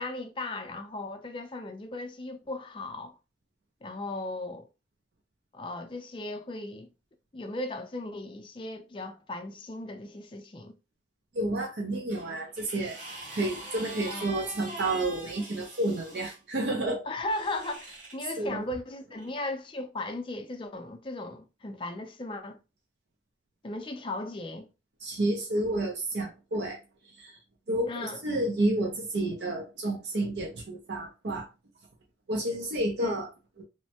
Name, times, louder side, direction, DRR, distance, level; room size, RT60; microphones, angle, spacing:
voice 1, 0.0-3.2 3.8-4.7 5.5-6.9 7.3-10.7 14.1-14.4 17.1-22.6 23.6-24.7 27.9-28.2 33.0-33.1, left 2 dB, 30° left, 0.4 m, -37 dB
voice 2, 11.3-13.0 13.3-17.0 18.4-18.6 25.0-26.8 27.2-27.3 27.7-31.5 32.3-33.3 33.6-33.7, right 1 dB, 75° right, 0.6 m, -30 dB
sound 1, 12.1-16.4 17.2-18.3 19.2-19.3, right 2 dB, 45° right, 1.3 m, -43 dB
3.1 x 2.1 x 2.8 m
head